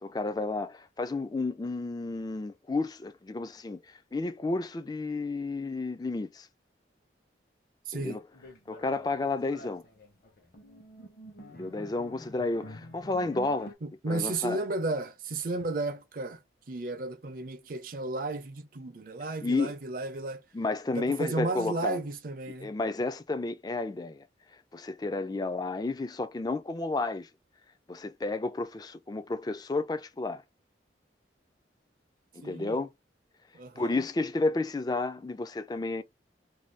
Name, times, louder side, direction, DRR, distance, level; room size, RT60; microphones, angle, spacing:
voice 1, 0.0-6.5 7.9-8.2 8.7-9.8 11.5-13.7 14.1-14.6 19.4-19.7 20.5-22.0 22.6-24.2 24.7-27.3 27.9-30.4 32.3-32.9 33.8-36.0, left 3 dB, 20° left, 0.3 m, -31 dB
voice 2, 7.9-8.2 13.8-16.4 16.7-20.4 20.9-22.7 32.4-32.8 33.5-34.0, right 2 dB, 50° right, 0.5 m, -33 dB
sound 1, 8.3-13.7, equal, 55° left, 0.9 m, -47 dB
2.6 x 2.2 x 3.2 m
head